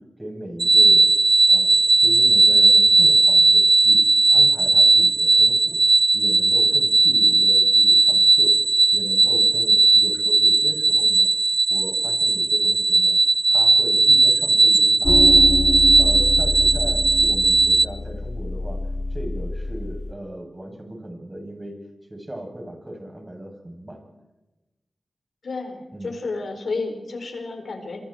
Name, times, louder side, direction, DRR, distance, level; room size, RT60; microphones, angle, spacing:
voice 1, 0.2-1.1 1.5-4.0 4.3-5.8 6.1-8.6 8.9-11.3 11.7-13.2 13.5-15.4 16.0-18.8 19.1-21.8 22.1-24.0 25.9-26.1, right 1 dB, 25° right, 2 dB, 8.0 m, -37 dB
sound 1, 0.6-17.9, right 3 dB, 50° right, 0.8 m, -16 dB
sound 2, 15.0-20.1, left 2 dB, 50° left, 1.4 m, -26 dB
voice 2, 25.4-28.0, left 3 dB, 85° left, 4 dB, 4.8 m, -31 dB
28.5 x 23.0 x 4.6 m, 1.0 s
cardioid pair, 55°, 0 cm